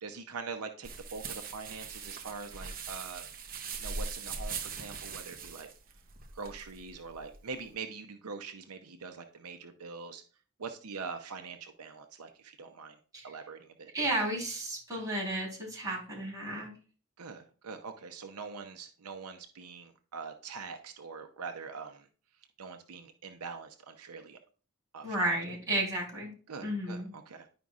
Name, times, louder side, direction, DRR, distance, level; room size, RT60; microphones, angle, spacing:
voice 1, 0.0-5.7 6.3-10.2 10.6-13.0 13.2-13.9 17.2-22.1 22.6-24.4 24.9-25.2 26.5-27.5, right 5 dB, 80° right, 6 dB, 0.7 m, -43 dB
sound 1, 0.8-7.7, right 5 dB, 40° right, 0.9 m, -41 dB
voice 2, 13.9-16.7 25.0-26.3 26.6-27.1, right 1 dB, 15° right, -4 dB, 3.5 m, -33 dB
10.5 x 5.1 x 2.4 m, 0.39 s
head